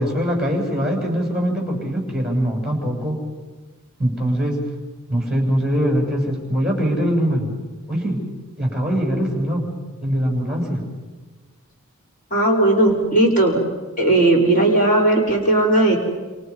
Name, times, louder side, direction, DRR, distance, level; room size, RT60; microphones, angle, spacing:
voice 1, 0.0-3.2 4.0-4.6 5.1-7.5 7.9-8.2 8.6-9.6 10.0-10.8, equal, 5° right, 0 dB, 7.5 m, -22 dB
voice 2, 12.3-13.6 14.0-16.0, right 2 dB, 35° left, 0 dB, 5.4 m, -16 dB
29.0 x 28.5 x 5.7 m, 1.3 s
head